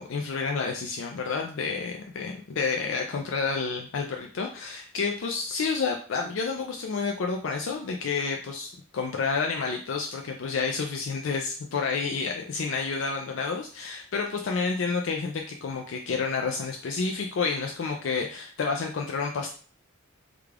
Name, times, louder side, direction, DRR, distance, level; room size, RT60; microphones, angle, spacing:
voice 1, 0.0-19.5, left 4 dB, 65° left, 2 dB, 0.4 m, -30 dB
3.5 x 2.3 x 3.3 m, 0.41 s
head